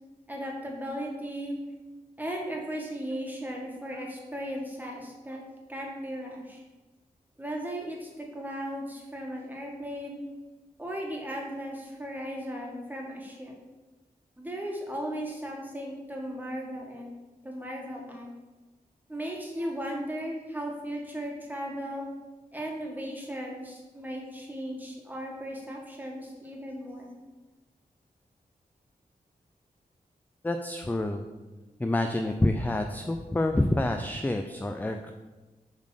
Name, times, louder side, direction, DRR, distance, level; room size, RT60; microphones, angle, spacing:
voice 1, 0.3-1.5 2.2-5.4 5.7-6.6 7.4-10.2 10.8-13.6 14.4-17.1 17.4-18.3 19.1-22.0 22.5-27.1, equal, 10° right, -1 dB, 1.8 m, -36 dB
voice 2, 30.4-31.2 31.8-35.1, left 1 dB, 10° left, 5 dB, 0.4 m, -27 dB
7.2 x 4.0 x 6.5 m, 1.2 s
wide cardioid pair, 95°, 15 cm